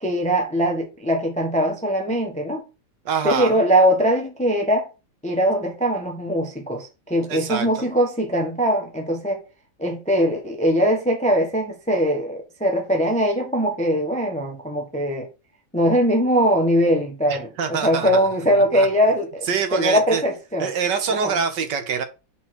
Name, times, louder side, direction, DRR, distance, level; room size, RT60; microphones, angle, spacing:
voice 1, 0.0-2.6 3.2-4.9 5.2-9.4 9.8-15.3 15.7-20.7 21.1-21.3, equal, 5° left, 1.0 m, -21 dB
voice 2, 3.1-3.6 7.3-7.9 17.3-18.9 19.5-20.2 20.6-22.0, right 6 dB, 65° right, 1.7 m, -25 dB
5.7 x 4.1 x 6.2 m
omnidirectional pair, 2.1 m